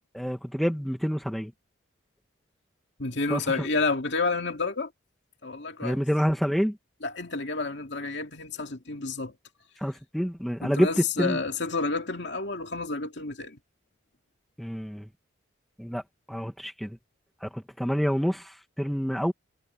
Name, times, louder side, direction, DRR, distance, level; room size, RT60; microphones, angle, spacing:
voice 1, 0.1-1.5 3.3-3.7 5.8-6.8 9.8-10.9 11.2-11.4 14.6-15.1 15.8-16.0 16.3-17.0 17.4-19.3, equal, ahead, 2.1 m, -28 dB
voice 2, 3.0-4.9 5.4-6.0 7.0-9.3 10.6-13.6, left 3 dB, 60° left, 2.5 m, -30 dB
head